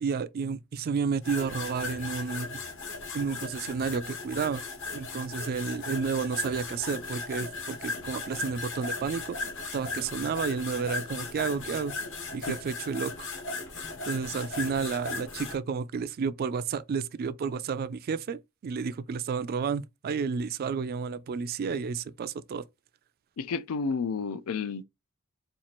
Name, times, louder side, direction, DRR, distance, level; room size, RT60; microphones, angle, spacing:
voice 1, 0.0-2.6 3.1-4.6 4.9-9.4 9.7-11.9 12.3-13.3 14.0-22.6, right 5 dB, 45° right, 0.3 m, -31 dB
sound 1, 1.2-15.6, left 3 dB, 60° left, 1.1 m, -37 dB
voice 2, 23.4-24.8, left 5 dB, 80° left, 0.4 m, -31 dB
4.3 x 2.4 x 3.0 m
head